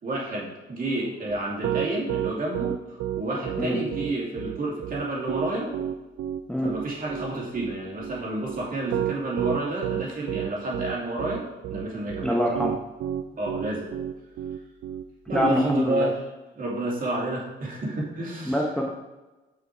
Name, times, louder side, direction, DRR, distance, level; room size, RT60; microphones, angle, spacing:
voice 1, 0.0-5.7 6.6-11.4 11.7-12.4 13.4-13.9 15.3-16.2 16.6-18.6, right 2 dB, 45° right, -4 dB, 2.5 m, -30 dB
Piano, 1.3-15.5, right 11 dB, 80° right, 0.4 m, -30 dB
voice 2, 12.2-12.7 15.3-16.1 18.4-18.9, equal, 5° left, -1 dB, 0.9 m, -24 dB
6.2 x 5.2 x 4.6 m, 1.1 s
cardioid pair, 90°, 20 cm